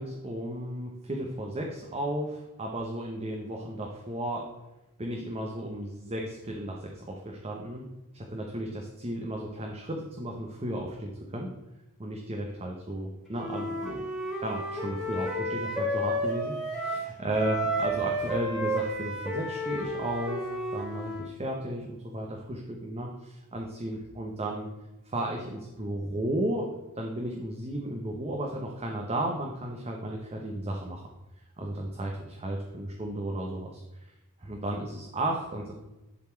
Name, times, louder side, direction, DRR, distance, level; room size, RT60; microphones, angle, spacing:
voice 1, 0.0-4.4 5.0-7.8 8.1-11.5 12.0-14.0 14.4-24.7 25.1-26.7 27.0-31.1 31.6-33.8 34.4-35.7, right 1 dB, 30° right, 0 dB, 0.9 m, -34 dB
Wind instrument woodwind instrument, 13.3-17.0 17.3-21.3, right 1 dB, ahead, 2.5 m, -32 dB
10.5 x 4.1 x 4.4 m, 0.98 s
head